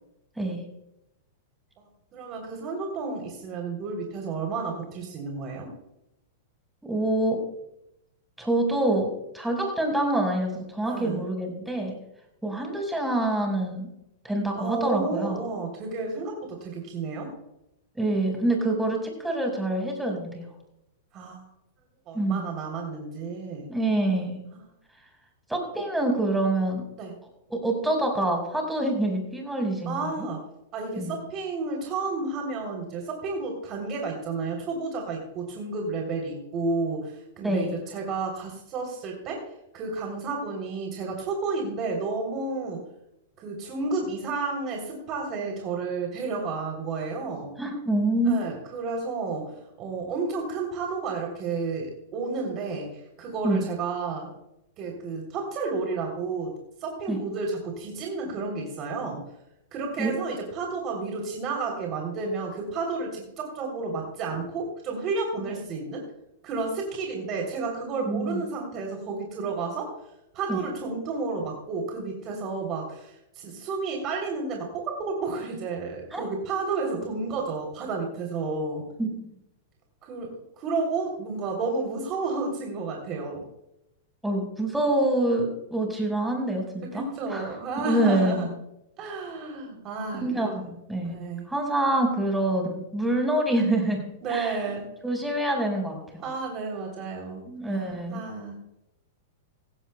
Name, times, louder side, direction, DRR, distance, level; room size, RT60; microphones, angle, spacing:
voice 1, 2.1-5.7 10.8-11.2 14.6-17.3 21.1-21.4 22.1-23.7 27.0-27.1 29.8-30.4 30.7-39.4 39.7-42.8 43.4-47.5 48.2-54.3 54.8-56.5 56.8-59.2 59.7-66.1 66.4-69.9 70.3-78.8 80.0-83.4 86.9-88.5 89.0-90.7 91.0-91.4 94.2-94.9 96.2-98.5, right 4 dB, 40° right, 1 dB, 3.2 m, -31 dB
voice 2, 6.8-7.4 8.4-11.9 12.4-13.9 14.2-15.4 18.0-20.4 22.1-22.4 23.7-24.4 25.5-26.8 27.5-30.3 31.0-31.1 37.4-37.7 47.6-48.5 53.4-53.6 57.1-57.2 60.0-60.1 68.0-68.4 70.5-70.6 76.1-76.2 79.0-79.1 84.2-87.0 87.3-87.5 87.8-88.5 90.2-91.2 91.5-94.0 94.3-94.6 95.0-96.3 97.5-98.2, right 1 dB, 5° right, 2 dB, 4.8 m, -26 dB
16.5 x 16.5 x 2.2 m, 0.85 s
hypercardioid pair, 110°, 0 cm